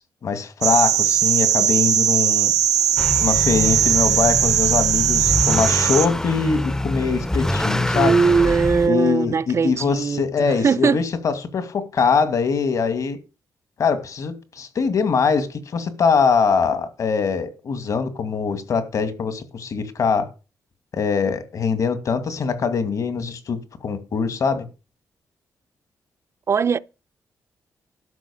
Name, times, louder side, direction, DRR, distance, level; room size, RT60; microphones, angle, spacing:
voice 1, 0.0-2.5 3.2-8.2 8.8-13.2 13.8-20.3 20.9-24.6, left 5 dB, 65° left, 2.4 m, -22 dB
sound 1, 0.6-6.1, right 9 dB, 85° right, 1.1 m, -19 dB
Motor vehicle (road) / Accelerating revving vroom, 3.0-8.9, left 1 dB, 10° left, 0.7 m, -25 dB
voice 2, 7.9-11.0 26.5-26.8, right 5 dB, 50° right, 0.6 m, -20 dB
12.5 x 6.0 x 7.2 m
cardioid pair, 70°, 6 cm